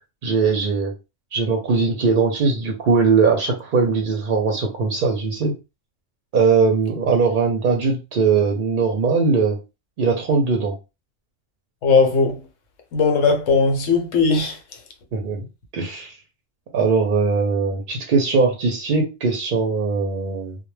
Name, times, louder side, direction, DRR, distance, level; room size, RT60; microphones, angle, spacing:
voice 1, 0.2-0.9 1.3-5.5 6.3-9.6 10.0-10.7 15.1-15.5 15.7-16.2 16.7-20.6, right 4 dB, 55° right, 0.6 m, -20 dB
voice 2, 11.8-12.4 12.9-14.6, left 4 dB, 85° left, 1.0 m, -18 dB
2.1 x 2.1 x 3.1 m
omnidirectional pair, 1.2 m